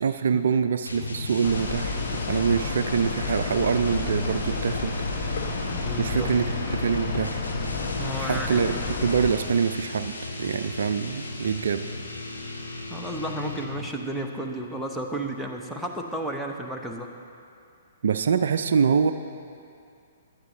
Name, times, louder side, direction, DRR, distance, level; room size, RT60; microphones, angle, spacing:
voice 1, 0.0-2.0 2.3-4.9 6.0-6.5 6.7-7.4 8.2-10.1 10.4-11.9 18.0-19.1, right 6 dB, 60° right, 10 dB, 0.4 m, -25 dB
sound 1, 0.9-13.9, left 2 dB, 85° left, 1.6 m, -36 dB
sound 2, 1.4-9.3, left 4 dB, 50° left, 1.4 m, -31 dB
voice 2, 5.7-6.3 8.0-8.6 12.9-17.1, right 1 dB, ahead, 0 dB, 1.0 m, -32 dB
17.0 x 11.5 x 3.2 m, 2.4 s
figure-of-eight pair, 120°, 0 cm